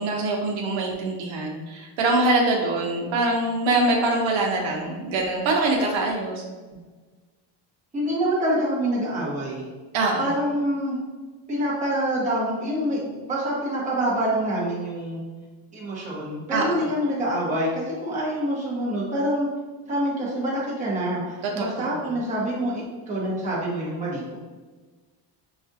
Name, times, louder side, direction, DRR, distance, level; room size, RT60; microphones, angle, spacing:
voice 1, 0.0-6.4 9.9-10.2 16.5-16.9 21.6-22.1, right 2 dB, 75° right, 0 dB, 0.8 m, -24 dB
voice 2, 7.9-9.7 10.2-11.0 11.5-15.2 15.7-19.5 19.9-24.3, right 1 dB, 15° right, -7 dB, 1.0 m, -26 dB
5.9 x 2.4 x 2.7 m, 1.4 s
cardioid pair, 175°, 48 cm